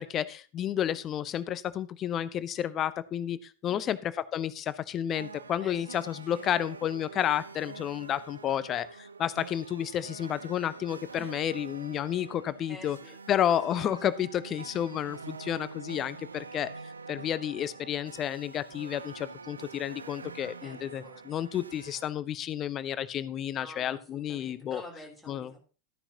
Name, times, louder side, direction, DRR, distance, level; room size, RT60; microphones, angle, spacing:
voice 1, 0.0-13.0 13.3-16.7 17.1-24.8 25.3-25.5, left 10 dB, 30° left, 17 dB, 0.7 m, -31 dB
sound 1, 5.1-22.0, right 4 dB, 75° right, 0.6 m, -45 dB
voice 2, 5.6-6.0 6.3-6.5 11.1-11.3 12.7-13.8 20.6-21.2 23.5-25.6, left 2 dB, ahead, -2 dB, 3.5 m, -49 dB
14.0 x 9.8 x 2.9 m, 0.36 s
figure-of-eight pair, 90°, 0 cm